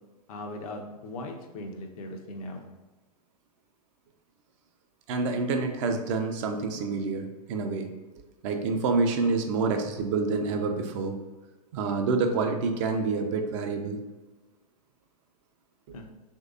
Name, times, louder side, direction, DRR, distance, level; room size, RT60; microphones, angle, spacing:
voice 1, 0.3-2.6 15.9-16.0, left 1 dB, 60° left, 3 dB, 0.5 m, -39 dB
voice 2, 5.1-7.9 8.4-11.1 11.7-14.0, right 4 dB, 50° right, 5 dB, 0.4 m, -27 dB
3.1 x 2.6 x 2.4 m, 1.2 s
hypercardioid pair, 100°, 20 cm